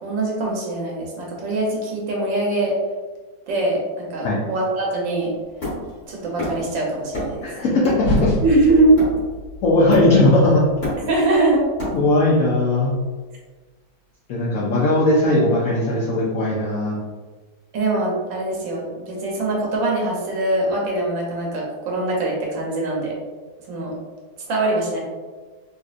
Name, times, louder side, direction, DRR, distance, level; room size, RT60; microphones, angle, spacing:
voice 1, 0.0-2.7 3.5-5.3 6.1-7.5 8.4-8.9 11.1-11.6 17.7-23.1 23.7-23.9 24.5-25.0, right 2 dB, 75° right, -2 dB, 1.5 m, -22 dB
sound 1, 5.2-7.5 7.8-12.1, equal, 65° left, 1.5 m, -30 dB
Hammer, 5.6-6.7 7.1-7.5 7.8-9.4 9.9-10.4 10.6-12.3, left 1 dB, 40° left, 1.8 m, -30 dB
voice 2, 7.4-8.3 9.6-10.6 11.9-12.9 14.3-17.0, left 2 dB, 85° left, -5 dB, 0.7 m, -18 dB
4.0 x 2.5 x 2.4 m, 1.3 s
omnidirectional pair, 2.2 m